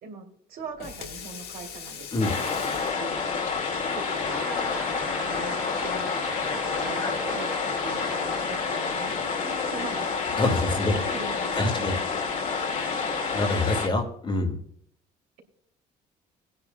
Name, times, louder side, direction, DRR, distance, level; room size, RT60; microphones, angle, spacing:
voice 1, 0.0-3.3 3.7-5.6 5.8-9.1 9.4-10.4 10.7-12.0 12.5-13.3, right 5 dB, 60° right, 2 dB, 2.9 m, -42 dB
Water tap faucet / Sink (filling or washing), 0.6-6.1, left 7 dB, 70° left, 1.7 m, -44 dB
sound 1, 2.2-13.9, left 5 dB, 50° left, 2.2 m, -29 dB
sound 2, 3.9-8.9, equal, 5° right, 1.1 m, -40 dB
voice 2, 10.4-11.0 11.5-11.9 13.3-14.6, left 2 dB, 30° left, 5 dB, 2.1 m, -26 dB
21.5 x 9.6 x 2.3 m, 0.68 s
cardioid pair, 110°, 17 cm